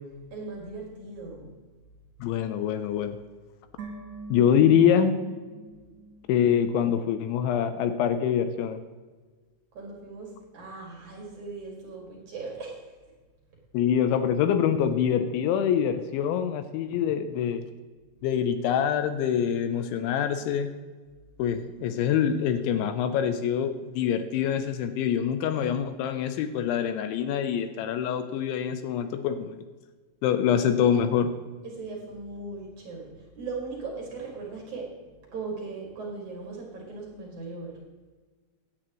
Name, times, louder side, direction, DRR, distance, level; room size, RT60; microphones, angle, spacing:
voice 1, 0.3-1.5 5.7-5.9 9.7-12.9 31.6-37.8, right 3 dB, 50° right, -2 dB, 2.8 m, -39 dB
voice 2, 2.2-3.2 4.3-5.1 6.3-8.8 13.7-17.6 18.2-20.7 21.4-29.6 30.2-31.3, left 8 dB, 80° left, 9 dB, 2.9 m, -25 dB
sound 1, 3.8-7.1 7.3-7.4, right 2 dB, 80° right, 1.5 m, -44 dB
16.5 x 10.0 x 3.0 m, 1.4 s
omnidirectional pair, 5.5 m